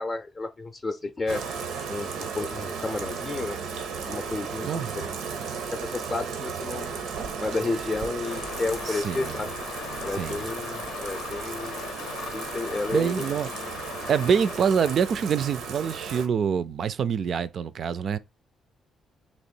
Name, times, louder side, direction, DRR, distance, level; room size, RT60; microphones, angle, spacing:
voice 1, 0.0-1.4 1.9-3.6 4.0-5.1 5.7-7.0 7.4-9.5 10.0-11.9 12.3-13.2 13.6-13.7, left 3 dB, 30° left, 0.5 m, -32 dB
Bathtub (filling or washing), 1.3-16.3, right 5 dB, 90° right, 0.7 m, -35 dB
sound 1, 8.2-15.0, left 7 dB, 85° left, 0.6 m, -39 dB
voice 2, 8.9-9.4 10.1-10.4 12.9-13.5 14.1-18.2, right 7 dB, 55° right, 0.3 m, -26 dB
3.1 x 3.0 x 4.3 m
cardioid pair, 90°, 0 cm